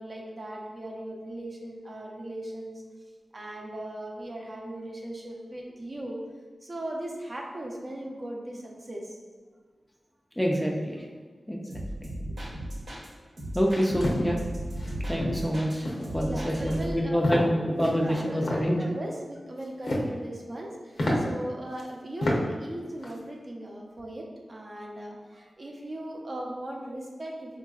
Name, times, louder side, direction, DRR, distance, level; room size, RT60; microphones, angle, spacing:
voice 1, 0.0-2.8 3.3-6.2 6.6-9.2 13.2-13.4 16.0-17.5 17.9-27.6, right 1 dB, 40° right, -1 dB, 0.6 m, -38 dB
voice 2, 10.4-11.1 11.5-11.8 13.5-14.4 15.1-18.7, equal, 5° left, -1 dB, 0.4 m, -27 dB
sound 1, 11.7-13.1 13.4-15.7 16.0-17.0, right 1 dB, 75° right, 0.8 m, -36 dB
sound 2, 13.7-14.2 14.8-14.9 15.2-15.5 15.8-16.1 16.5-16.8 17.2-17.5 17.8-18.6 19.6-20.1 20.5-20.6 21.0-21.2 21.8-21.9 22.2-22.4 22.8-23.1, left 1 dB, 75° left, 0.6 m, -29 dB
3.9 x 2.6 x 2.3 m, 1.5 s
wide cardioid pair, 75°, 0 cm